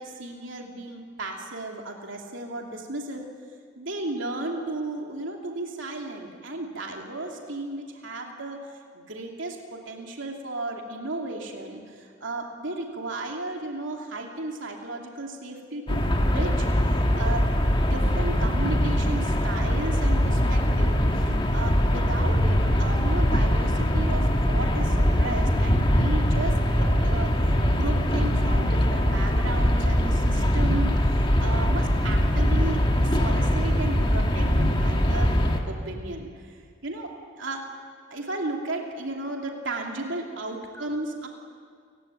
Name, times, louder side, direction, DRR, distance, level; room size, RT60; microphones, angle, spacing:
voice 1, 0.0-3.2 3.8-8.6 8.9-17.5 17.8-27.3 27.7-30.9 31.4-35.4 35.7-36.3 36.8-37.1 37.4-37.6 38.1-41.3, right 2 dB, 75° right, 1 dB, 2.9 m, -34 dB
sound 1, 15.9-35.6, equal, 25° left, 1.9 m, -22 dB
29.5 x 16.5 x 9.1 m, 2.1 s
head